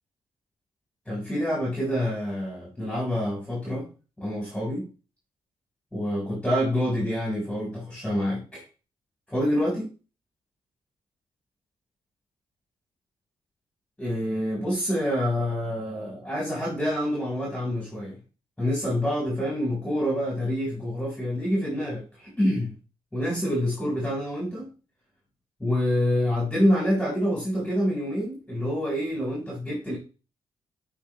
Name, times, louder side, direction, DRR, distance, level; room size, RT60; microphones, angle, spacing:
voice 1, 1.1-3.9 4.2-4.9 5.9-8.6 9.3-9.9 14.0-18.2 18.6-22.7 23.1-24.7 25.6-30.0, equal, 5° left, -4 dB, 3.7 m, -27 dB
12.0 x 4.8 x 3.0 m, 0.33 s
cardioid pair, 130°, 11 cm